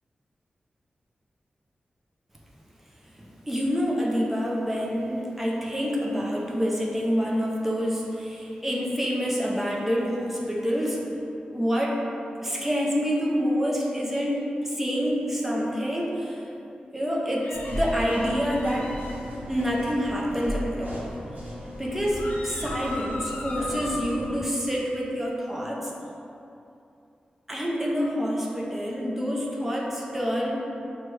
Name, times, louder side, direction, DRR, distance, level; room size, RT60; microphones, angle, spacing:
voice 1, 3.2-11.0 11.5-12.0 12.4-16.4 16.9-19.0 19.5-21.1 21.8-25.9 27.5-30.6, equal, 10° right, -3 dB, 0.6 m, -27 dB
sound 1, 17.4-19.2 22.1-24.2, left 2 dB, 90° left, 0.4 m, -37 dB
sound 2, 17.5-24.4, equal, 75° right, 0.8 m, -36 dB
5.6 x 2.2 x 3.2 m, 2.7 s
wide cardioid pair, 120°, 3 cm